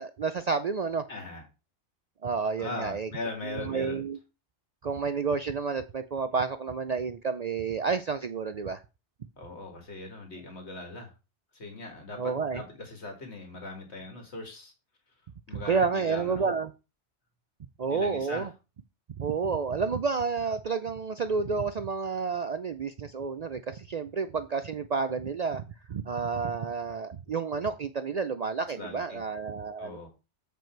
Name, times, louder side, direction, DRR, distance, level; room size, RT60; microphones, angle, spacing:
voice 1, 0.0-1.0 2.2-3.1 3.4-4.2 4.8-8.8 12.2-12.6 15.5-16.7 17.8-18.5 19.2-25.6 25.9-30.1, right 5 dB, 55° right, 10 dB, 0.4 m, -30 dB
voice 2, 1.1-1.4 2.6-4.0 9.4-11.1 11.5-14.7 15.5-16.5 17.9-18.5 28.8-29.2 29.8-30.1, left 2 dB, 70° left, 3 dB, 2.3 m, -40 dB
7.8 x 5.2 x 4.5 m, 0.29 s
omnidirectional pair, 1.2 m